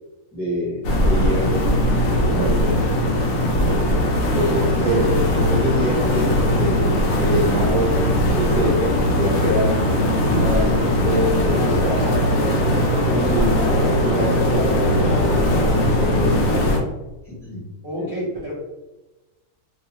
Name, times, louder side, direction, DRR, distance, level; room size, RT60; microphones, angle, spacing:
voice 1, 0.3-1.7 2.0-2.9 4.2-8.0 8.3-12.3 12.9-16.6 17.2-17.6, left 1 dB, 10° left, -7 dB, 0.9 m, -26 dB
sound 1, 0.8-16.8, left 1 dB, 70° left, 0.9 m, -20 dB
sound 2, 11.1-16.8, left 1 dB, 55° left, 0.5 m, -28 dB
voice 2, 17.8-18.5, equal, 45° right, -8 dB, 0.8 m, -29 dB
2.4 x 2.3 x 2.9 m, 1.1 s
omnidirectional pair, 1.5 m